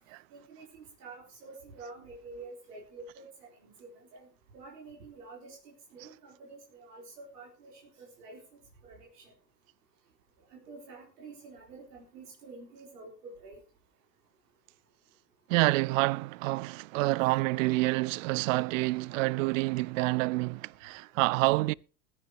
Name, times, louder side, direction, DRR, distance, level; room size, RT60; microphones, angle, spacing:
voice 1, 0.3-4.3 4.5-8.4 8.8-9.3 10.5-13.6 17.2-17.3, right 3 dB, 70° right, 4.1 m, -49 dB
voice 2, 15.5-21.7, right 22 dB, 55° right, 0.5 m, -27 dB
21.0 x 9.8 x 3.0 m
figure-of-eight pair, 80°, 48 cm